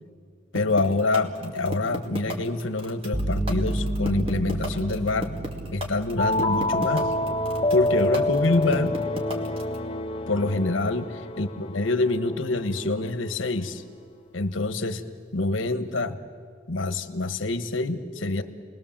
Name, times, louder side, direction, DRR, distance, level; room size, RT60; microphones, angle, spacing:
voice 1, 0.5-5.3 5.7-7.1 7.7-9.0 10.3-11.1 11.4-13.8 14.3-15.0 15.3-16.2 16.7-18.4, left 2 dB, 90° left, 9 dB, 1.3 m, -26 dB
sound 1, 0.6-9.8, equal, 30° right, 2.2 m, -33 dB
sound 2, 3.1-10.8, right 1 dB, 5° right, 1.1 m, -33 dB
sound 3, 6.2-12.7, left 2 dB, 30° left, 0.8 m, -27 dB
29.0 x 20.5 x 7.4 m, 2.1 s
head